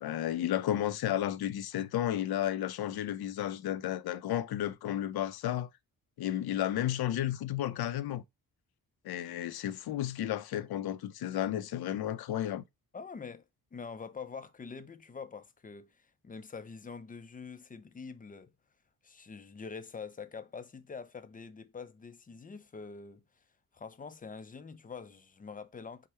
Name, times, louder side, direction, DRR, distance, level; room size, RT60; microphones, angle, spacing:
voice 1, 0.0-5.7 6.2-8.2 9.0-12.6, left 12 dB, 70° left, 0.5 m, -32 dB
voice 2, 12.9-13.5 13.7-18.5 19.0-23.2 23.7-26.1, left 5 dB, 20° left, 0.4 m, -45 dB
4.7 x 2.1 x 4.2 m
cardioid pair, 90°, 39 cm